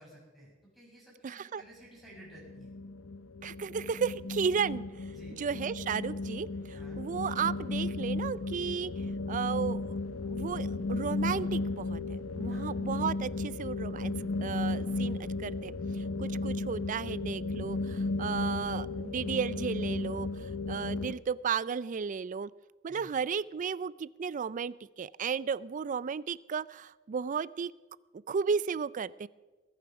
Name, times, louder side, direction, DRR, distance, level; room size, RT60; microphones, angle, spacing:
voice 1, 0.0-2.7 5.1-5.4 6.7-7.0 12.5-12.7 22.9-23.1, right 1 dB, ahead, -6 dB, 6.8 m, -54 dB
voice 2, 1.2-1.6 3.4-4.8 5.4-8.9 9.3-10.0 10.3-14.1 14.4-22.5 22.8-27.7 28.3-29.3, right 6 dB, 40° right, 19 dB, 0.4 m, -34 dB
sound 1, 2.1-21.1, left 2 dB, 80° left, 0.8 m, -35 dB
21.5 x 9.9 x 6.0 m, 1.3 s
head